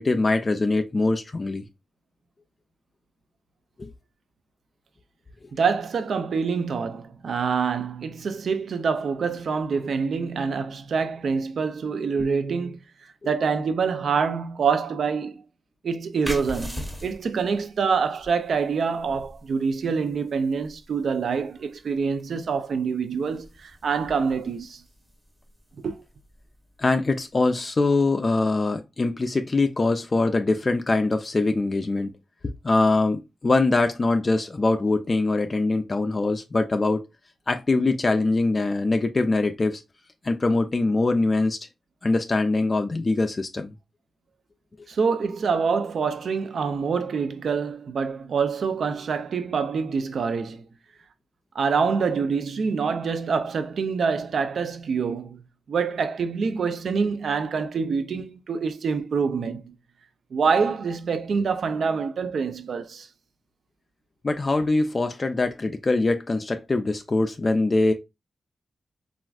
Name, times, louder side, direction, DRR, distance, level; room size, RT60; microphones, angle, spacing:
voice 1, 0.0-1.7 3.8-3.9 13.2-13.3 26.8-32.1 32.6-37.1 37.5-39.8 40.2-41.6 42.0-43.7 64.2-67.9, left 3 dB, 40° left, 0.3 m, -23 dB
voice 2, 5.5-12.8 13.3-15.4 15.8-24.8 25.8-26.0 44.9-50.6 51.6-55.4 55.7-59.8 60.3-63.1, right 5 dB, 75° right, 0.4 m, -26 dB
sound 1, 16.2-27.5, equal, 10° right, 0.9 m, -42 dB
3.2 x 2.4 x 2.3 m
cardioid pair, 70°, 0 cm